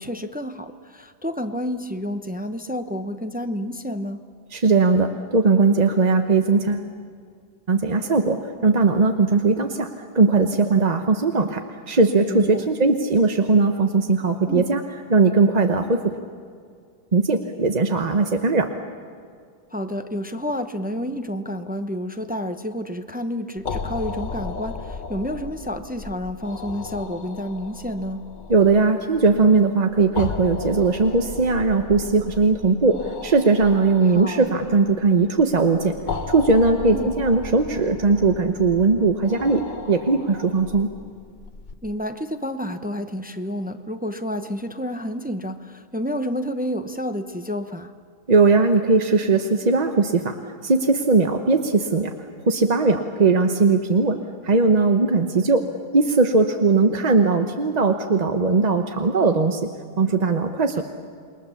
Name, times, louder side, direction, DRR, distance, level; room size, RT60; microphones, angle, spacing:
voice 1, 0.0-4.2 12.3-12.7 14.5-14.7 19.7-28.2 34.0-34.5 36.9-37.1 41.8-47.9 60.8-60.9, equal, 10° right, 8 dB, 0.4 m, -29 dB
voice 2, 4.5-6.9 7.7-11.6 11.9-14.8 15.1-16.1 17.1-18.7 28.5-35.9 36.3-40.9 48.3-50.4 50.6-52.1 52.4-54.2 54.4-55.6 55.9-59.7 60.0-60.8, right 3 dB, 35° right, 6 dB, 0.8 m, -19 dB
sound 1, 23.6-41.7, left 4 dB, 35° left, 0.9 m, -36 dB
28.0 x 22.0 x 7.1 m, 2.2 s
omnidirectional pair, 1.7 m